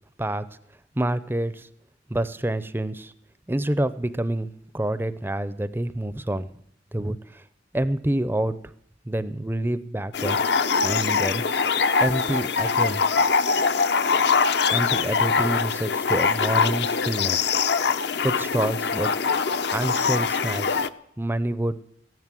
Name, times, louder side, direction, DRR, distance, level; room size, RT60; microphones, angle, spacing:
voice 1, 1.0-1.7 2.1-3.1 3.5-6.5 6.9-7.4 7.7-8.6 9.1-10.4 10.8-11.4 12.0-13.0 14.7-17.5 18.2-19.1 19.7-20.8 21.2-21.8, right 1 dB, 10° right, 14 dB, 0.5 m, -27 dB
sound 1, 10.1-20.9, left 5 dB, 60° left, 0.6 m, -23 dB
15.5 x 11.0 x 7.6 m, 0.69 s
head